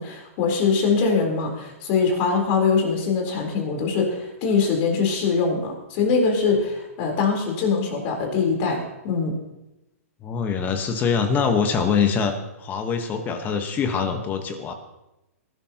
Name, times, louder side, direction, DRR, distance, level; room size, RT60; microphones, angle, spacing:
voice 1, 0.0-9.3, left 5 dB, 40° left, 1 dB, 3.9 m, -23 dB
voice 2, 10.2-14.7, left 6 dB, 20° left, 7 dB, 1.2 m, -24 dB
19.5 x 12.0 x 2.9 m, 0.93 s
hypercardioid pair, 135°, 8 cm